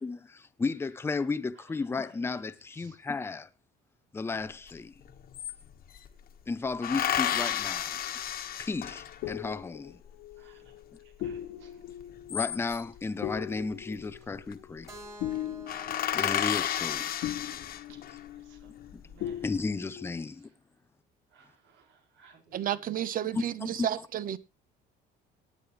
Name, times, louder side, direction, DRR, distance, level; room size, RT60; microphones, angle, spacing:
voice 1, 0.0-3.5 4.1-4.9 6.5-8.0 8.6-9.9 12.3-14.9 16.1-17.1 18.9-19.0 19.4-20.5 23.3-24.1, left 4 dB, 10° left, 0.6 m, -34 dB
sound 1, 4.7-4.8 5.0-6.1 6.8-9.3 12.0-13.0 14.2-14.5 14.8-15.0 15.3-15.4 15.7-18.2 18.8-19.5, left 10 dB, 50° left, 1.4 m, -32 dB
sound 2, 8.8-18.9 19.2-20.1, left 12 dB, 70° left, 0.9 m, -40 dB
voice 2, 10.4-10.7 11.2-11.7 18.5-18.7 19.0-19.4 21.3-21.8 22.2-22.7, right 5 dB, 70° right, 4.6 m, -58 dB
Keyboard (musical), 14.9-18.8, right 1 dB, 15° right, 3.0 m, -52 dB
voice 3, 22.5-24.4, right 11 dB, 45° right, 1.0 m, -32 dB
18.5 x 9.8 x 3.1 m
cardioid pair, 140°, 20 cm